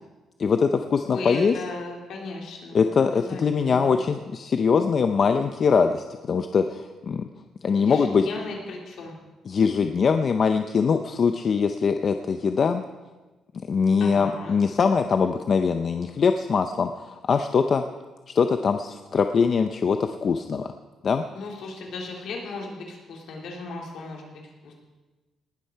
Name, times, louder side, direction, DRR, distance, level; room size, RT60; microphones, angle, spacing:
voice 1, 0.4-1.5 2.7-7.3 7.6-8.3 9.5-12.8 13.7-17.8 18.3-20.7 21.0-21.2, left 5 dB, 35° left, 7 dB, 0.5 m, -22 dB
voice 2, 1.1-4.0 7.8-9.1 14.0-14.6 21.3-24.7, left 3 dB, 65° left, -1 dB, 3.4 m, -36 dB
19.0 x 12.5 x 4.6 m, 1.2 s
cardioid pair, 170°, 0 cm